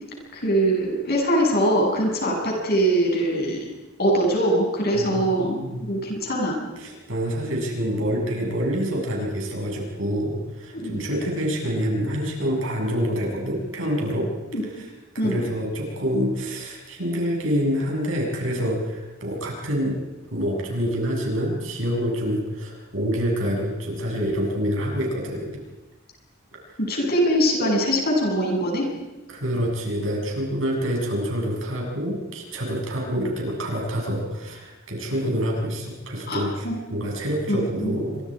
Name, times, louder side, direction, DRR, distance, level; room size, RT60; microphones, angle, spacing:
voice 1, 0.3-3.7 4.0-6.6 10.7-11.2 14.5-14.6 15.2-15.4 26.9-28.9 36.3-36.8 37.5-38.0, right 1 dB, 55° left, 0 dB, 7.2 m, -22 dB
voice 2, 4.9-5.9 6.8-14.3 15.2-20.0 20.3-25.6 26.7-26.8 29.3-38.2, equal, 80° right, 0 dB, 7.1 m, -27 dB
28.5 x 25.0 x 5.0 m, 1.1 s
head